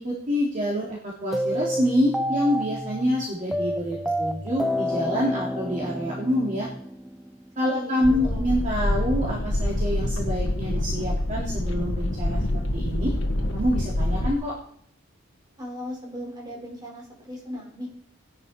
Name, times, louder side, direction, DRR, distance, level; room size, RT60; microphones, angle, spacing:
voice 1, 0.0-6.7 7.6-13.1 13.5-14.5, equal, 40° right, -4 dB, 3.0 m, -26 dB
sound 1, 1.3-7.5, equal, ahead, 0.5 m, -29 dB
voice 2, 7.7-8.5 15.6-17.9, equal, 20° right, -2 dB, 4.9 m, -37 dB
sound 2, 8.0-14.3, left 1 dB, 70° left, 1.5 m, -26 dB
18.0 x 11.0 x 4.4 m, 0.66 s
head